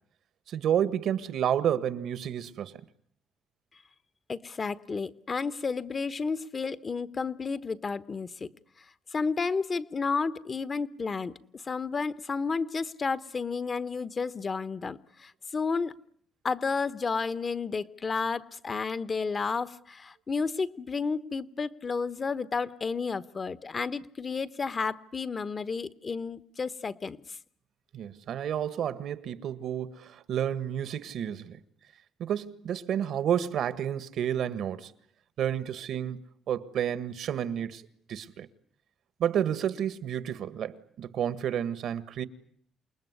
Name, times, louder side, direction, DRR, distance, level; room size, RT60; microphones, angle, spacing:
voice 1, 0.5-2.8 27.9-31.6 32.2-34.9 35.4-36.2 36.5-37.8 38.1-38.5 39.2-42.2, right 9 dB, 75° right, 1.7 m, -30 dB
voice 2, 4.3-8.5 9.1-16.0 16.4-27.4, left 4 dB, 35° left, 1.1 m, -32 dB
28.5 x 20.0 x 9.8 m
cardioid pair, 90°, 0 cm